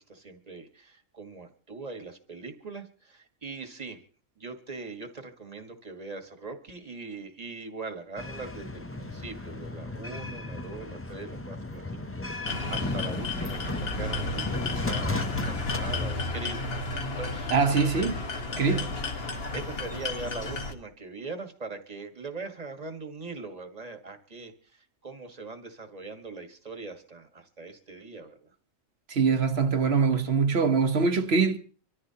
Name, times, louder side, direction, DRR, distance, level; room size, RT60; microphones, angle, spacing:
voice 1, 0.0-4.0 4.4-16.6 17.2-17.5 18.6-18.9 19.5-28.5, right 3 dB, 30° right, 1.5 m, -41 dB
sound 1, 8.2-16.1, left 2 dB, 15° left, 0.4 m, -35 dB
sound 2, 12.4-20.7, left 3 dB, 45° left, 1.6 m, -33 dB
voice 2, 17.5-18.2 18.6-19.0 29.1-31.6, right 5 dB, 50° right, 1.2 m, -23 dB
25.5 x 14.0 x 2.8 m
omnidirectional pair, 1.4 m